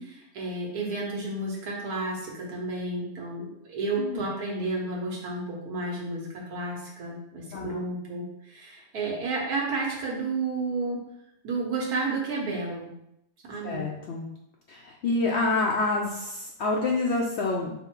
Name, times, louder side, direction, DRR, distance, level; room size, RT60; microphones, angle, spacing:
voice 1, 0.0-11.0 11.4-12.9 13.4-13.9, right 3 dB, 70° right, -2 dB, 1.4 m, -31 dB
voice 2, 13.6-14.3 14.7-17.7, left 3 dB, 80° left, -1 dB, 0.6 m, -27 dB
5.5 x 2.1 x 4.4 m, 0.80 s
omnidirectional pair, 1.7 m